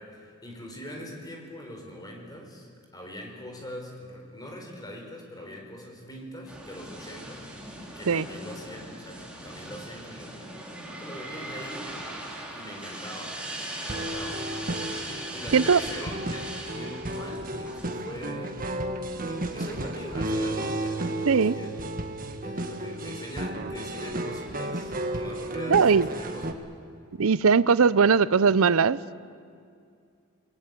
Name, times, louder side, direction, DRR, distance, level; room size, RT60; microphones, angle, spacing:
voice 1, 0.0-7.5 7.9-10.5 10.8-12.0 12.5-14.6 15.3-18.6 19.2-21.7 22.4-26.6, equal, 20° left, 1 dB, 4.6 m, -42 dB
sound 1, 6.5-18.5, right 1 dB, 5° right, 3.6 m, -39 dB
sound 2, 13.9-26.5, right 1 dB, 40° right, 1.6 m, -33 dB
voice 2, 25.7-26.1 27.2-29.1, right 5 dB, 75° right, 18 dB, 0.6 m, -20 dB
28.0 x 21.0 x 8.3 m, 2.3 s
head